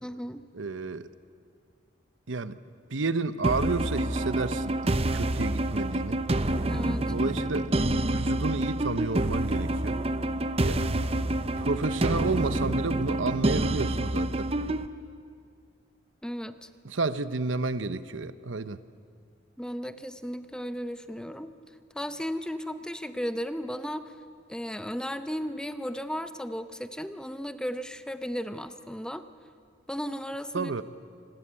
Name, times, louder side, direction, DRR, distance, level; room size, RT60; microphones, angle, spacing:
voice 1, 0.0-0.4 6.7-7.1 16.2-16.7 19.6-21.5 21.9-24.2 24.5-29.2 29.9-30.7, equal, 5° left, 10 dB, 0.8 m, -35 dB
voice 2, 0.5-1.1 2.3-2.6 2.9-6.2 7.1-7.7 8.0-10.0 10.6-10.8 11.6-14.5 16.8-18.8 30.5-30.8, right 3 dB, 80° right, 13 dB, 0.9 m, -31 dB
sound 1, 3.4-14.9, right 1 dB, 30° right, 0.8 m, -27 dB
26.5 x 20.5 x 8.8 m, 2.2 s
head